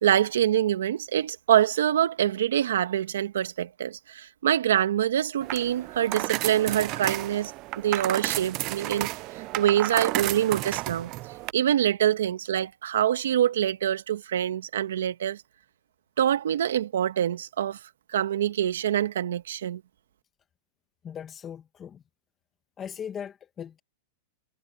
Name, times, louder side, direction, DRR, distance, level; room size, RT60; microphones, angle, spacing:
voice 1, 0.0-9.1 9.4-11.1 11.5-15.4 16.2-17.8 18.1-19.8, right 11 dB, 80° right, 1.7 m, -25 dB
sound 1, 5.4-11.5, right 21 dB, 40° right, 0.4 m, -32 dB
voice 2, 21.0-22.0 22.8-23.8, left 8 dB, 25° left, 1.4 m, -38 dB
hypercardioid pair, 135°, 0 cm